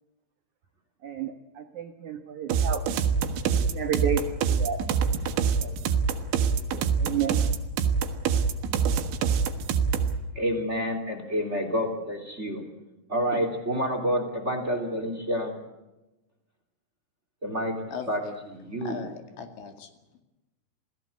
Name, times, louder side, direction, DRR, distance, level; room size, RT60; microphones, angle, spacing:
voice 1, 1.0-2.8 3.5-4.8 5.6-5.8 6.7-7.4, right 8 dB, 70° right, 7 dB, 1.8 m, -31 dB
sound 1, 2.5-10.2, right 6 dB, 85° right, 4.0 m, -25 dB
voice 2, 10.3-12.6 13.1-15.5 17.4-17.8 18.1-18.2 18.5-19.0, equal, 20° right, 6 dB, 2.5 m, -28 dB
voice 3, 17.9-18.3 18.8-19.9, left 6 dB, 80° left, 6 dB, 4.7 m, -39 dB
27.5 x 17.5 x 8.3 m, 1.0 s
omnidirectional pair, 5.2 m